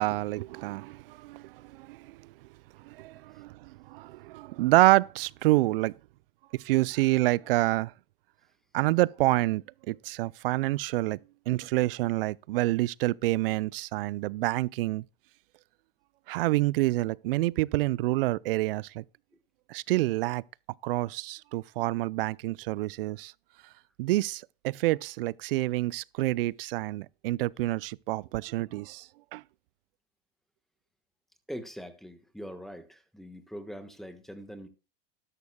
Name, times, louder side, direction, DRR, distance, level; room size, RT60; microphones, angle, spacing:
voice 1, 0.0-2.2 2.8-5.9 6.6-7.9 8.7-11.2 11.5-15.0 16.3-19.0 19.7-20.4 20.8-23.3 24.0-29.4, right 18 dB, 70° right, 0.5 m, -27 dB
voice 2, 31.5-34.7, equal, ahead, 1.3 m, -42 dB
13.0 x 11.0 x 2.2 m
hypercardioid pair, 120°, 29 cm